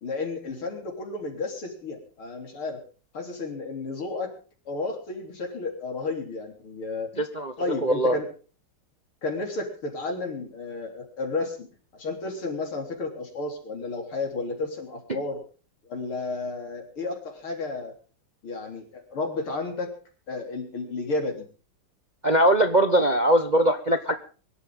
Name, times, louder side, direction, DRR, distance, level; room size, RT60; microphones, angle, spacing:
voice 1, 0.0-2.8 3.1-4.3 4.7-7.2 7.6-8.3 9.2-11.7 11.9-15.4 15.9-17.9 18.4-19.9 20.3-21.5, left 3 dB, 80° left, 3 dB, 4.5 m, -32 dB
voice 2, 7.2-7.5 7.8-8.2 15.1-15.2 22.2-24.1, right 1 dB, 35° right, 8 dB, 0.7 m, -21 dB
23.5 x 12.5 x 3.8 m, 0.38 s
omnidirectional pair, 2.3 m